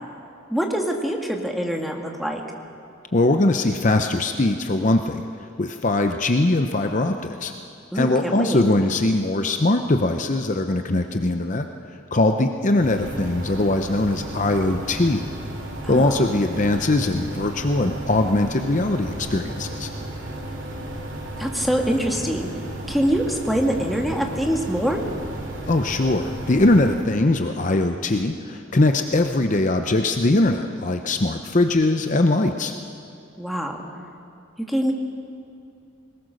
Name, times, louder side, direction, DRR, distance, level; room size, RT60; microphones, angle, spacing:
voice 1, 0.5-2.4 7.9-8.6 15.8-16.3 21.4-22.5 22.9-25.0 33.4-33.8 34.7-34.9, equal, ahead, 0 dB, 1.7 m, -24 dB
voice 2, 3.1-7.5 7.9-15.3 15.9-19.9 25.7-32.7, left 2 dB, 40° left, 6 dB, 0.7 m, -21 dB
sound 1, 12.8-27.0, right 1 dB, 65° right, 3.1 m, -33 dB
21.5 x 19.5 x 6.5 m, 2.6 s
head